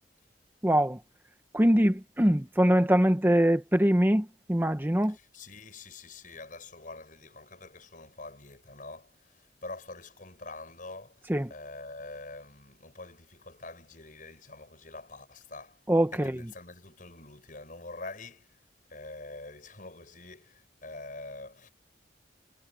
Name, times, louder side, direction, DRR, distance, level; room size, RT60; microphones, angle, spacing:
voice 1, 0.6-1.0 1.5-5.2 11.3-11.5 15.9-16.4, equal, 10° right, 1.0 m, -23 dB
voice 2, 5.1-15.8 16.1-18.6 18.9-21.7, left 3 dB, 50° left, 6.8 m, -45 dB
head